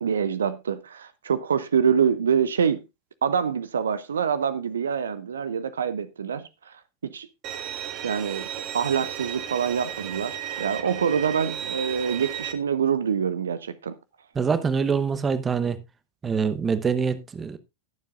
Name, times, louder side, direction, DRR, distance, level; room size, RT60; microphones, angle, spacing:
voice 1, 0.0-2.8 3.2-7.3 8.0-14.0, right 7 dB, 70° right, 0.6 m, -26 dB
Bowed string instrument, 7.4-12.5, right 10 dB, 35° right, 1.3 m, -34 dB
voice 2, 14.3-15.8 16.2-17.6, right 6 dB, 20° right, 0.9 m, -25 dB
20.0 x 7.2 x 2.5 m
figure-of-eight pair, 90°, 0 cm